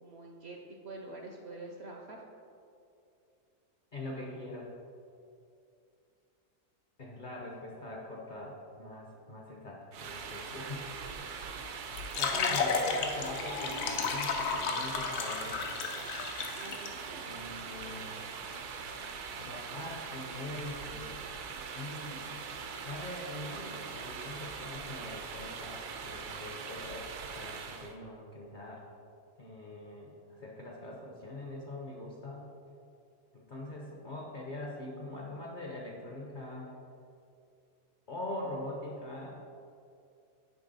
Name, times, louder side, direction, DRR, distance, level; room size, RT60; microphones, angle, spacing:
voice 1, 0.0-2.2 12.4-12.8 16.6-17.4 17.8-18.0, right 2 dB, 65° right, 1 dB, 0.7 m, -46 dB
voice 2, 3.9-4.7 7.0-10.9 11.2-11.5 12.1-15.7 17.2-18.2 19.4-21.2 21.7-22.4 22.8-27.0 27.3-28.8 29.4-32.5 33.3-36.7 38.1-39.4, left 1 dB, 45° left, -2 dB, 0.7 m, -43 dB
sound 1, 9.9-28.0, right 5 dB, 85° right, 1.2 m, -42 dB
sound 2, 11.9-16.9, left 5 dB, 85° left, 1.2 m, -33 dB
9.7 x 3.6 x 4.0 m, 2.5 s
omnidirectional pair, 1.6 m